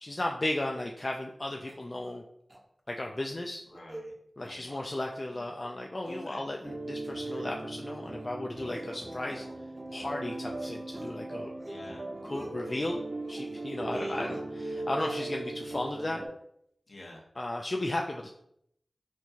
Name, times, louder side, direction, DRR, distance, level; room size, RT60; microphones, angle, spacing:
voice 1, 0.0-2.2 2.9-3.6 4.4-9.5 9.9-11.5 12.2-13.0 13.3-16.2 17.4-18.3, left 1 dB, 40° left, 1 dB, 0.3 m, -35 dB
sound 1, 1.7-2.2 2.5-2.6 3.0-3.2 3.6-4.1 4.4-4.8 5.3-5.7 6.0-6.7 7.1-7.5 7.9-8.3 8.7-10.2 10.5-11.2 11.5-11.9 12.2-12.8 13.2-13.8 14.1-15.4, right 1 dB, 25° right, 0.6 m, -47 dB
voice 2, 3.7-4.1 4.4-4.7 6.0-6.4 11.7-12.1 13.9-14.3 16.9-17.2, left 1 dB, 70° left, -2 dB, 0.9 m, -48 dB
sound 2, 6.6-16.3, right 2 dB, 65° right, 0.6 m, -38 dB
4.4 x 2.3 x 2.7 m, 0.73 s
wide cardioid pair, 55°, 0 cm